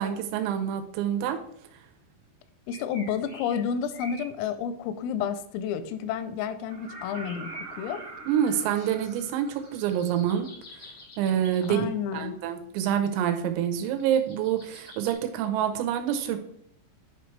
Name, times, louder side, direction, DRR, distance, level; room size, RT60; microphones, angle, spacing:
voice 1, 0.0-1.4 8.3-10.5 11.2-11.9 12.1-16.4, right 9 dB, 85° right, 6 dB, 3.5 m, -27 dB
voice 2, 2.7-7.5 7.8-8.0 11.7-12.4, left 8 dB, 85° left, 11 dB, 3.2 m, -30 dB
sound 1, 2.7-4.5 6.9-11.8 13.8-15.1, left 1 dB, 65° left, 1.2 m, -47 dB
sound 2, 6.7-10.5 12.4-12.5, right 4 dB, 70° right, 1.9 m, -44 dB
11.0 x 4.6 x 3.2 m, 0.71 s
omnidirectional pair, 5.8 m